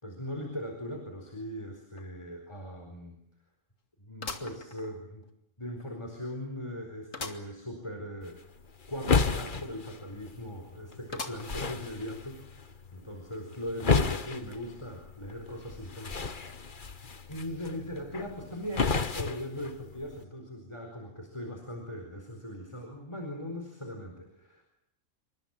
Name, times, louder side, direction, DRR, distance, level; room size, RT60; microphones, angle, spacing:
voice 1, 0.0-3.2 4.0-5.3 5.6-8.4 8.9-16.4 17.3-24.7, equal, 20° left, 3 dB, 4.6 m, -39 dB
sound 1, 2.0-2.1 2.5-2.6 4.2-5.3 5.8-5.9 7.1-7.5 8.0-8.1 8.2-8.3 11.1-11.7 12.3-12.4 13.4-13.5, left 4 dB, 75° left, 2.7 m, -41 dB
sound 2, 8.2-20.2, left 4 dB, 40° left, 1.3 m, -33 dB
28.0 x 25.0 x 7.4 m, 0.81 s
omnidirectional pair, 1.4 m